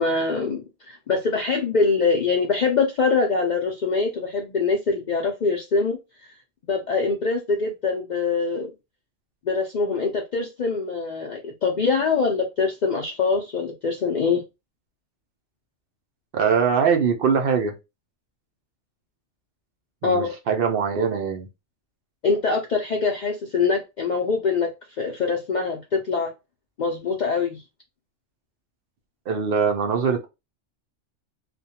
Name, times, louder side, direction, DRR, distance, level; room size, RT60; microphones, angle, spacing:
voice 1, 0.0-6.3 6.7-8.7 9.4-14.4 20.0-20.3 22.2-24.7 25.0-26.3 26.8-27.6, left 4 dB, 90° left, 0.4 m, -24 dB
voice 2, 16.3-17.8 20.0-21.5 29.3-30.3, right 6 dB, 60° right, 0.6 m, -22 dB
2.4 x 2.2 x 2.7 m
omnidirectional pair, 1.3 m